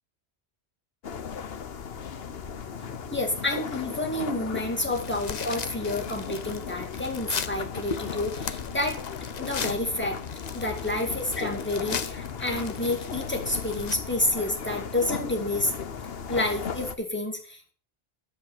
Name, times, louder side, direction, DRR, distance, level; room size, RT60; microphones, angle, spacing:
sound 1, 1.0-16.9, left 6 dB, 65° left, 1.1 m, -36 dB
voice 1, 3.1-9.0 9.4-10.2 10.5-15.7 16.3-17.7, left 2 dB, 10° left, 3 dB, 2.1 m, -29 dB
sound 2, 4.8-14.0, left 6 dB, 45° left, 0.8 m, -38 dB
9.5 x 8.1 x 7.1 m, 0.42 s
omnidirectional pair, 1.1 m